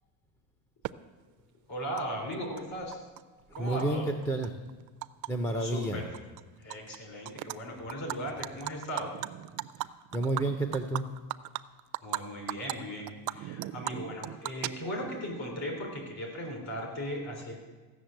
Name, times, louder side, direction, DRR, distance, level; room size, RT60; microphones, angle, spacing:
Animal, 0.8-0.9 2.0-2.1 2.3-3.2 3.5-5.3 5.6-5.8 6.1-7.0 7.2-7.6 7.9-12.2 12.5-12.7 13.1-15.2, right 17 dB, 50° right, 0.4 m, -37 dB
voice 1, 1.7-3.0 3.5-4.1 5.6-6.1 6.6-9.2 12.0-17.6, equal, 45° left, 2 dB, 3.8 m, -37 dB
voice 2, 3.6-4.5 5.3-6.0 9.8-9.9 10.1-11.1, right 2 dB, 5° left, 4 dB, 0.5 m, -30 dB
14.5 x 6.6 x 9.0 m, 1.3 s
cardioid pair, 170°, 40 cm